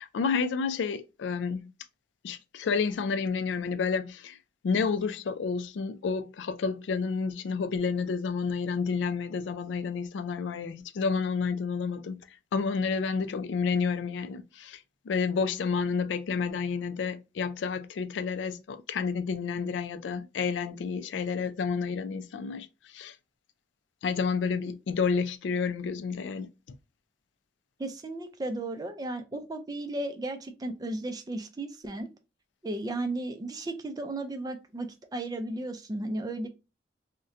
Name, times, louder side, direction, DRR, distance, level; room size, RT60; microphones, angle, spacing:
voice 1, 0.0-1.7 2.2-4.4 4.6-12.2 12.5-23.2 24.0-26.5, left 5 dB, 90° left, 0.3 m, -30 dB
voice 2, 27.8-32.1 32.6-36.5, right 2 dB, 20° right, 0.4 m, -34 dB
2.6 x 2.1 x 3.6 m
head